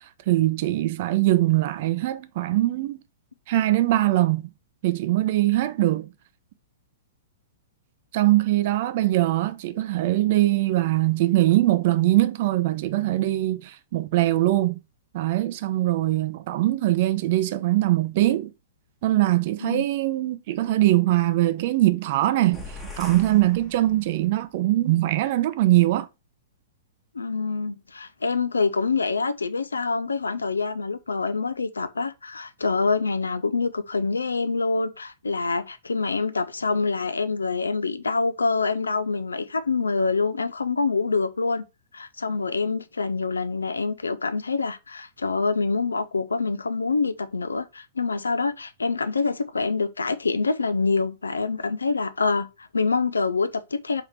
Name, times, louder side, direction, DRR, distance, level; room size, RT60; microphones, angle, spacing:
voice 1, 0.3-3.0 3.5-4.5 4.8-6.1 8.1-14.8 15.1-18.5 19.0-26.1, right 16 dB, 50° right, 0.4 m, -22 dB
sound 1, 22.5-24.4, left 2 dB, 10° left, 1.0 m, -41 dB
voice 2, 27.1-41.6 41.9-54.0, left 4 dB, 80° left, 0.3 m, -26 dB
3.5 x 2.8 x 3.2 m
figure-of-eight pair, 110°, 0 cm